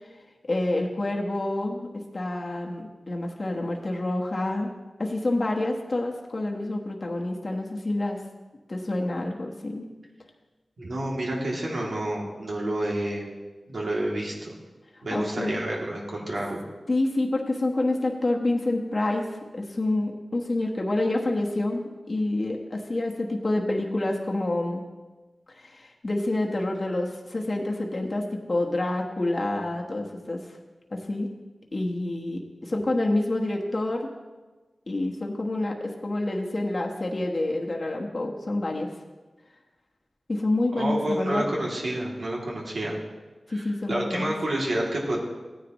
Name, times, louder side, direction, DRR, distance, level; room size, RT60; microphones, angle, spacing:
voice 1, 0.4-4.7 5.0-8.2 8.7-9.9 15.1-15.7 16.9-19.3 19.5-24.8 25.5-30.4 30.9-31.3 31.7-34.1 34.9-38.9 40.3-41.4 43.5-44.3, left 2 dB, 45° left, 0 dB, 1.2 m, -28 dB
voice 2, 10.8-13.3 13.7-14.5 15.0-16.6 40.8-42.9 43.5-45.2, right 1 dB, 70° right, -3 dB, 2.7 m, -29 dB
15.5 x 9.7 x 3.1 m, 1.3 s
wide cardioid pair, 65°, 0 cm